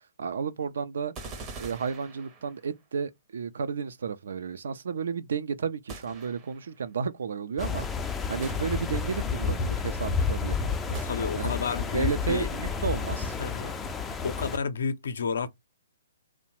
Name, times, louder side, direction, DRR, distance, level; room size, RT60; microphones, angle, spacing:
voice 1, 0.2-1.1 1.6-7.9 8.3-11.0 11.4-11.5 11.9-13.3, right 6 dB, 70° right, 0.4 m, -32 dB
sound 1, 1.1-2.8 5.9-6.8 8.4-9.3 10.9-11.8, right 4 dB, 25° right, 0.6 m, -44 dB
sound 2, 7.6-14.6, left 5 dB, 10° left, 0.3 m, -30 dB
voice 2, 11.0-12.5 13.4-13.7 14.2-15.5, left 6 dB, 70° left, 0.5 m, -31 dB
2.8 x 2.0 x 2.9 m
hypercardioid pair, 140°, 0 cm